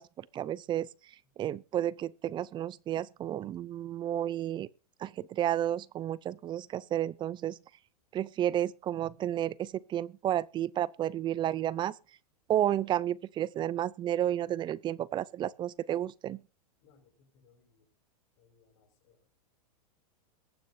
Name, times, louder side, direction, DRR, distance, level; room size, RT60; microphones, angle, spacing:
voice 1, 0.0-4.7 5.0-7.6 8.1-12.0 12.5-16.4, right 11 dB, 25° right, 0.5 m, -32 dB
voice 2, 16.8-17.9 18.4-19.3, left 5 dB, 55° left, 7.0 m, -66 dB
22.0 x 9.4 x 2.7 m
hypercardioid pair, 125°, 20 cm